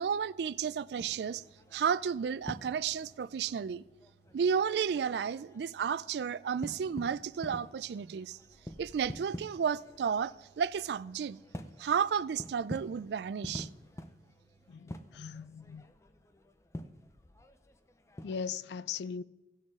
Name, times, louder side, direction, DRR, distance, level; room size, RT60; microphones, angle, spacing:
voice 1, 0.0-1.4 1.7-3.8 4.3-8.4 8.8-11.4 11.8-13.7, right 7 dB, 75° right, 0.3 m, -32 dB
sound 1, 1.0-18.6, left 1 dB, 15° left, 0.5 m, -48 dB
voice 2, 14.7-15.9 18.2-19.2, left 6 dB, 75° left, 0.4 m, -39 dB
17.0 x 6.4 x 3.6 m
head